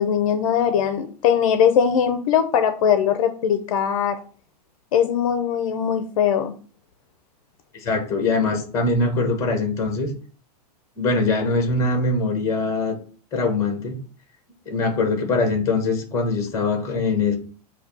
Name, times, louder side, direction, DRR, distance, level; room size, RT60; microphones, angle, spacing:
voice 1, 0.0-4.2 4.9-6.5, left 8 dB, 55° left, 9 dB, 0.6 m, -20 dB
voice 2, 7.7-10.1 11.0-13.0 13.3-14.0 14.6-17.4, left 3 dB, 15° left, 5 dB, 1.3 m, -22 dB
6.6 x 2.8 x 5.4 m, 0.40 s
supercardioid pair, 170°, 21 cm